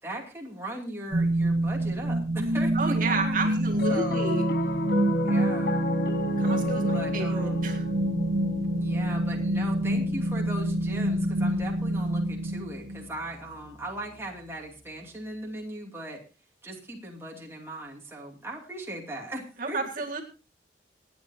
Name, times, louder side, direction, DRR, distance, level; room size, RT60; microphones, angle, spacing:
voice 1, 0.0-4.3 5.2-5.9 6.8-7.7 8.8-16.2 16.6-19.8, right 1 dB, 15° right, -1 dB, 2.6 m, -38 dB
sound 1, 1.1-13.1, right 1 dB, 80° right, 1.2 m, -27 dB
voice 2, 2.7-4.5 6.4-7.9 19.6-20.2, right 3 dB, 50° right, 2 dB, 1.9 m, -31 dB
Piano, 3.7-14.2, left 3 dB, 60° left, 1.1 m, -34 dB
27.0 x 9.4 x 2.8 m, 0.33 s
head